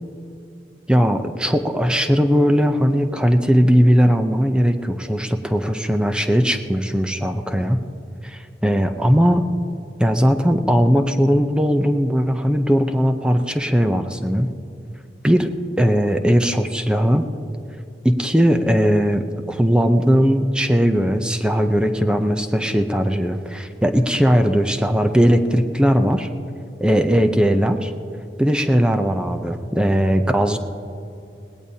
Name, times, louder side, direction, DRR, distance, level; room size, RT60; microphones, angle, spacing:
voice 1, 0.9-7.8 8.2-9.4 10.0-14.5 15.2-15.5 15.8-17.3 18.0-26.3 26.8-27.9 28.4-30.6, equal, 5° right, 6 dB, 0.6 m, -18 dB
21.0 x 17.5 x 2.8 m, 2.7 s
head